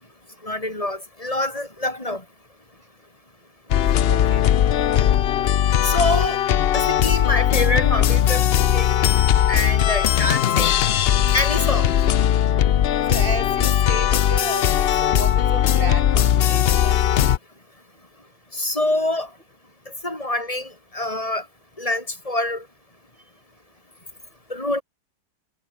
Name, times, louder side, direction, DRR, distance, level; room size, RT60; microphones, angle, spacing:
voice 1, 0.4-2.2 5.8-6.5 6.7-8.4 8.7-8.9 9.5-10.8 11.3-11.9 18.5-19.3 20.0-21.5 21.8-22.7 24.5-24.8, left 1 dB, 20° left, 6.9 m, -25 dB
sound 1, 3.7-17.4, left 10 dB, 60° left, 0.6 m, -19 dB
voice 2, 4.1-4.4 13.1-17.2, right 1 dB, 35° right, 3.3 m, -33 dB
omnidirectional pair, 1.6 m